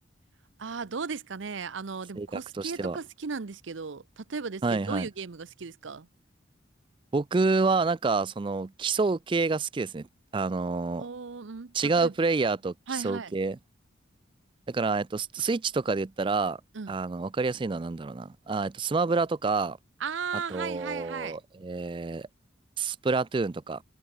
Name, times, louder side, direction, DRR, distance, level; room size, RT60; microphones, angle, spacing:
voice 1, 0.6-6.1 11.0-12.1 12.9-13.3 16.7-17.0 20.0-21.4, right 5 dB, 75° right, 0.7 m, -36 dB
voice 2, 2.2-3.0 4.6-5.1 7.1-10.1 10.3-11.0 11.7-13.6 14.7-16.6 16.9-19.8 20.5-22.3 22.8-23.8, right 4 dB, 25° right, 0.3 m, -28 dB
head